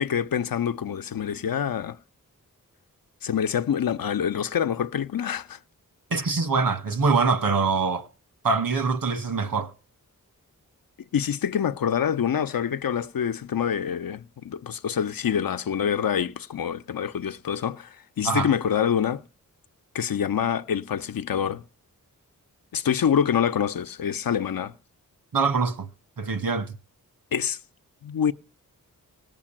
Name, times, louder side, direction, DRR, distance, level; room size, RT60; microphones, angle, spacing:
voice 1, 0.0-2.0 3.2-5.6 11.1-19.2 19.9-21.6 22.7-24.7 27.3-27.6 28.0-28.3, left 8 dB, 85° left, 0.8 m, -26 dB
voice 2, 6.1-8.1 8.4-9.7 18.3-18.5 25.3-25.9 26.2-26.7, right 4 dB, 80° right, 2.0 m, -24 dB
18.5 x 6.9 x 8.9 m
wide cardioid pair, 90°, 34 cm